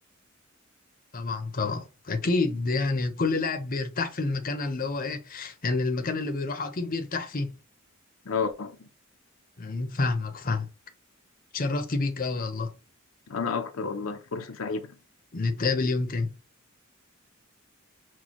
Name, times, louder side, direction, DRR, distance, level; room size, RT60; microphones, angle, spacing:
voice 1, 1.1-7.5 9.6-10.7 11.5-12.7 15.3-16.3, left 3 dB, 40° left, 0.7 m, -28 dB
voice 2, 8.3-8.9 13.3-14.9, left 5 dB, 75° left, 0.7 m, -31 dB
6.2 x 2.3 x 2.9 m
head